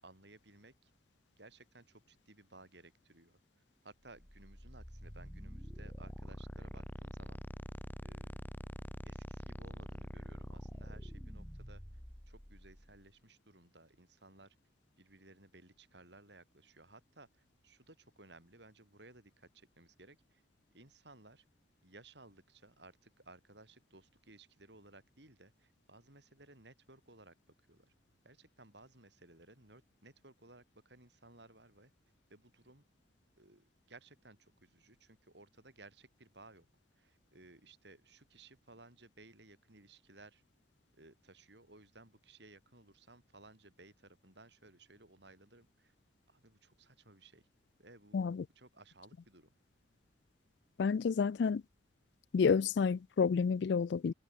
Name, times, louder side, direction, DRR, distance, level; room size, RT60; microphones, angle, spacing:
voice 1, 0.0-0.9 1.4-3.4 3.8-7.4 8.0-8.4 9.0-11.8 12.3-14.6 15.0-20.4 20.7-21.4 21.8-27.3 27.7-27.9 28.2-31.9 32.3-32.8 33.4-36.7 36.9-40.4 40.9-45.9 46.3-47.4 47.8-48.2 48.5-49.5, right 2 dB, 65° right, 6.3 m, -59 dB
sound 1, 4.2-13.0, equal, 10° left, 1.7 m, -46 dB
voice 2, 48.1-48.4 50.8-51.6 52.3-54.1, left 5 dB, 65° left, 0.4 m, -30 dB
head